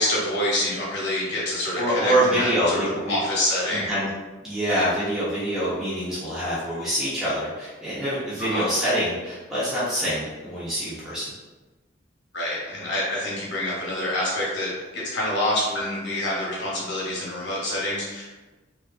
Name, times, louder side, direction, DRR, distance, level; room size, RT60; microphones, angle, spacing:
voice 1, 0.0-3.9 8.4-8.7 12.3-18.2, left 1 dB, 60° left, -5 dB, 0.8 m, -27 dB
voice 2, 1.8-3.1 3.7-4.1 4.4-11.2, right 1 dB, ahead, -11 dB, 0.6 m, -25 dB
2.7 x 2.3 x 2.4 m, 1.2 s
head